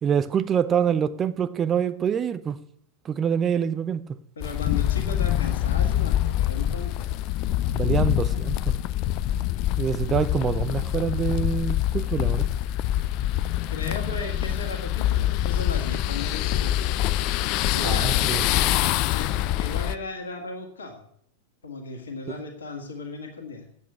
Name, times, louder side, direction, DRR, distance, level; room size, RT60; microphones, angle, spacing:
voice 1, 0.0-2.6 3.0-4.2 7.7-8.8 9.8-12.5 17.8-18.5, right 8 dB, 25° right, 0.6 m, -25 dB
voice 2, 4.4-7.1 13.3-16.7 17.7-18.1 19.1-21.1 21.6-23.7, left 3 dB, 70° left, 1.8 m, -36 dB
sound 1, 4.4-20.0, left 13 dB, 40° left, 0.4 m, -25 dB
8.4 x 8.3 x 8.3 m
figure-of-eight pair, 90°, 0 cm